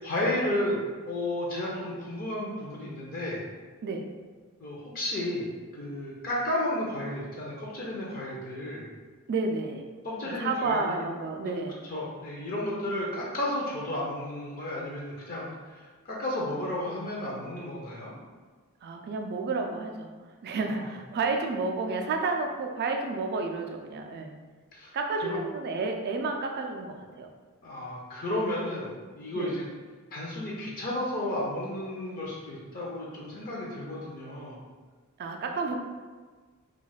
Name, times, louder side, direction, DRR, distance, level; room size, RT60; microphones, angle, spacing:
voice 1, 0.0-3.4 4.6-8.8 10.0-11.0 11.4-11.5 11.9-18.1 20.7-20.8 24.7-24.9 25.2-25.4 27.6-28.9 29.1-29.7 30.1-34.6, left 1 dB, 40° left, -4 dB, 0.5 m, -32 dB
voice 2, 3.8-4.1 9.3-9.9 10.2-11.8 18.8-20.1 20.4-24.3 24.9-27.3 29.3-29.5 35.2-35.8, right 3 dB, 45° right, 3 dB, 0.3 m, -31 dB
2.3 x 2.1 x 3.9 m, 1.4 s
head